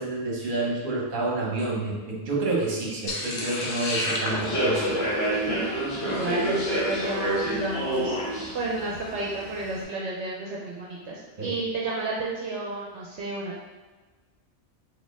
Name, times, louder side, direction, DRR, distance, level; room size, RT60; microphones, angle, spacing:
voice 1, 0.0-5.0 11.4-11.6, right 2 dB, 45° right, -3 dB, 1.0 m, -29 dB
sound 1, 3.1-7.4, left 1 dB, 45° left, 0.7 m, -33 dB
Human voice / Subway metro underground, 4.3-9.8, right 1 dB, 60° left, 1.5 m, -28 dB
voice 2, 6.0-8.2 8.5-13.6, right 2 dB, 70° right, -4 dB, 0.9 m, -32 dB
4.2 x 2.8 x 3.4 m, 1.3 s
omnidirectional pair, 1.2 m